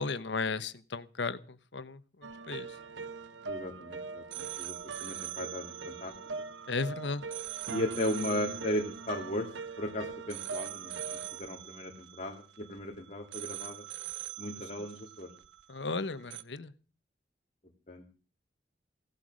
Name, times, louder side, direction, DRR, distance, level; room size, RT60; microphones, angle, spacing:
voice 1, 0.0-1.4 1.7-2.0 2.5-2.7 6.7-7.2 14.8-14.9 15.7-16.7, left 4 dB, 80° left, 14 dB, 1.1 m, -34 dB
sound 1, 2.2-12.9 13.3-16.0 16.3-16.4, right 6 dB, 90° right, 0.9 m, -41 dB
voice 2, 3.5-6.1 7.7-9.5 9.8-13.8 14.4-15.3 17.9-18.2, left 1 dB, 40° left, 2 dB, 2.2 m, -36 dB
17.0 x 12.0 x 6.4 m, 0.38 s
head